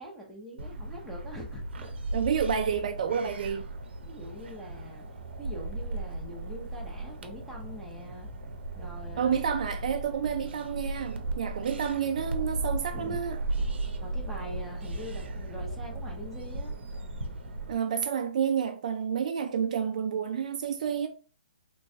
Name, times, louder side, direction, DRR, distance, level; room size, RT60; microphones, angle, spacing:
voice 1, 0.0-1.9 4.0-5.0 5.4-8.3 8.7-9.4 11.6-11.8 12.9-13.2 14.0-16.7, left 1 dB, ahead, 0.6 m, -43 dB
sound 1, 0.6-17.7, right 2 dB, 80° right, 0.7 m, -36 dB
voice 2, 2.1-3.6 9.2-13.4 17.7-21.1, right 7 dB, 40° right, 0.3 m, -29 dB
3.3 x 3.0 x 2.7 m
hypercardioid pair, 170°, 6 cm